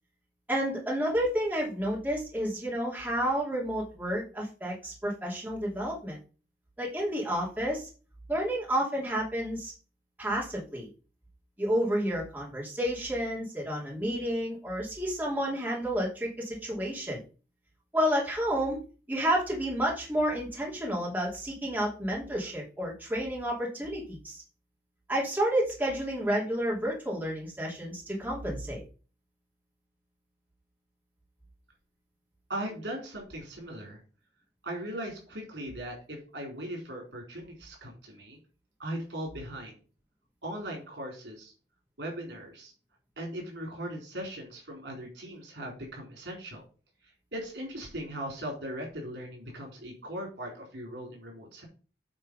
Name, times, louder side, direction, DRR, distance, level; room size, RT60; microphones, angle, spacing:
voice 1, 0.5-6.2 6.8-7.9 8.3-9.7 10.2-10.9 11.6-17.2 17.9-18.8 19.1-24.4 25.1-28.8, equal, 10° right, -4 dB, 3.0 m, -30 dB
voice 2, 32.5-34.0 34.6-38.4 38.8-39.7 40.4-41.5 42.0-42.7 43.2-46.6 47.3-51.6, right 1 dB, 85° right, 0 dB, 4.1 m, -39 dB
8.9 x 4.5 x 5.5 m, 0.36 s
head